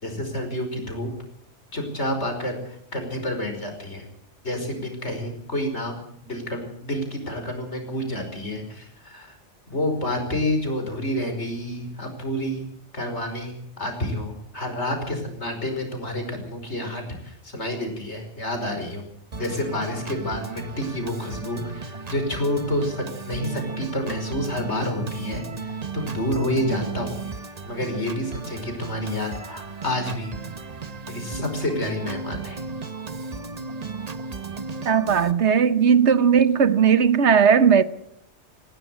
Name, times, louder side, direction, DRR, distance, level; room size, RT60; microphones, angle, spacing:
voice 1, 0.0-1.1 1.7-4.0 4.4-9.4 9.7-12.6 12.9-19.0 19.3-27.2 27.6-30.3 31.1-32.6, left 1 dB, 70° left, 5.5 m, -29 dB
Organ, 19.3-35.3, right 4 dB, 35° right, 1.1 m, -35 dB
voice 2, 34.8-37.8, right 7 dB, 70° right, 1.3 m, -17 dB
20.0 x 17.0 x 8.2 m
omnidirectional pair, 1.2 m